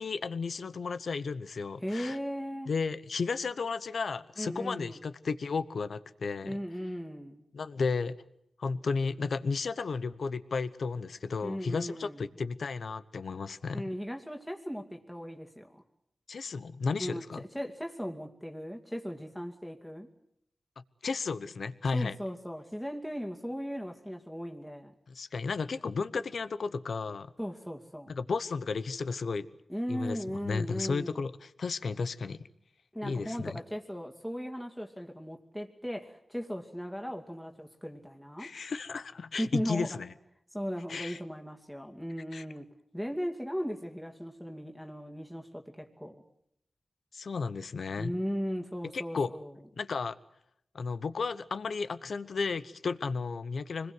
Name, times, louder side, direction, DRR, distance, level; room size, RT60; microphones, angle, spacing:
voice 1, 0.0-2.2 2.7-6.6 7.5-8.2 8.6-13.8 16.3-17.4 21.0-22.2 25.1-27.3 28.1-29.5 29.9-32.4 33.0-33.6 38.4-40.1 40.9-41.2 42.3-42.4 47.1-48.2 48.9-49.3 49.8-50.2 50.7-53.9, left 4 dB, 80° left, 14 dB, 1.0 m, -33 dB
voice 2, 1.8-2.7 4.4-5.0 6.4-7.4 11.4-12.2 13.7-15.8 17.0-20.1 21.9-24.9 27.4-28.2 29.7-31.2 32.9-38.5 39.4-40.0 40.5-42.7 42.9-46.2 48.0-49.5, equal, 5° left, 2 dB, 2.4 m, -37 dB
26.0 x 21.0 x 7.9 m, 0.76 s
cardioid pair, 45°, 0 cm